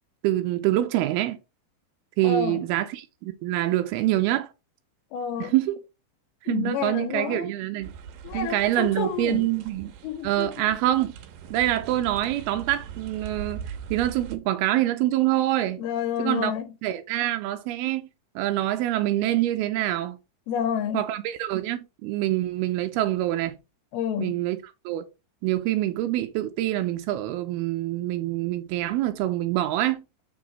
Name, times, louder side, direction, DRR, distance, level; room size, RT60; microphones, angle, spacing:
voice 1, 0.2-1.4 2.2-4.5 5.4-5.8 6.4-7.9 8.3-9.9 10.2-11.1 11.5-15.8 16.2-16.5 16.8-18.1 18.4-20.2 20.9-23.6 24.2-24.6 24.9-25.1 25.4-30.0, right 14 dB, 90° right, 2.6 m, -25 dB
voice 2, 2.2-2.6 5.1-5.5 6.5-7.5 8.2-9.4 10.0-10.5 15.8-16.7 20.5-21.0 23.9-24.3, left 8 dB, 80° left, 2.6 m, -29 dB
sound 1, 7.8-14.4, right 7 dB, 70° right, 2.4 m, -41 dB
7.3 x 6.0 x 3.2 m
omnidirectional pair, 4.5 m